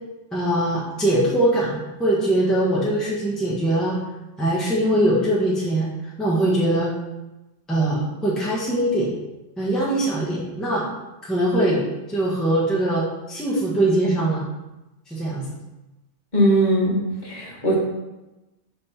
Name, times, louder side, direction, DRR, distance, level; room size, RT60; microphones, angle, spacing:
voice 1, 0.3-4.0 4.4-5.9 6.2-6.9 7.7-9.1 9.6-10.9 11.2-11.8 12.1-14.4 15.1-15.5, right 1 dB, ahead, -6 dB, 1.0 m, -22 dB
voice 2, 16.3-17.0 17.2-17.7, right 1 dB, 35° left, -5 dB, 1.5 m, -19 dB
5.2 x 3.4 x 5.6 m, 1.0 s
omnidirectional pair, 1.3 m